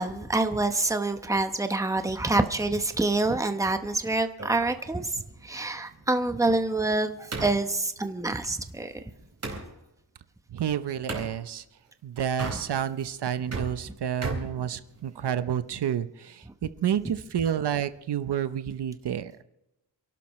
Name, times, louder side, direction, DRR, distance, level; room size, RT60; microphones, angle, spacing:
voice 1, 0.0-9.1 14.6-14.7 16.5-16.6, right 2 dB, 10° right, 7 dB, 0.9 m, -27 dB
sound 1, 4.4-9.7 11.1-11.3 12.3-13.0 13.3-15.3, right 3 dB, 40° right, 4.2 m, -37 dB
voice 2, 10.5-11.6 12.0-19.3, right 9 dB, 75° right, 12 dB, 0.8 m, -30 dB
28.5 x 12.0 x 3.2 m, 0.92 s
wide cardioid pair, 145°, 41 cm